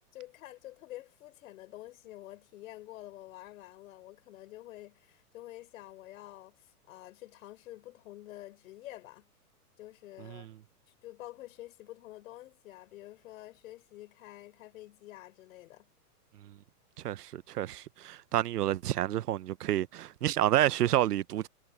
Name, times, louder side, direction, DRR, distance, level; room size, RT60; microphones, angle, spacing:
voice 1, 0.1-9.3 9.8-10.5 10.9-15.9, left 15 dB, 60° left, 4.8 m, -48 dB
voice 2, 17.0-21.5, right 13 dB, 80° right, 0.9 m, -29 dB
hypercardioid pair, 140°, 47 cm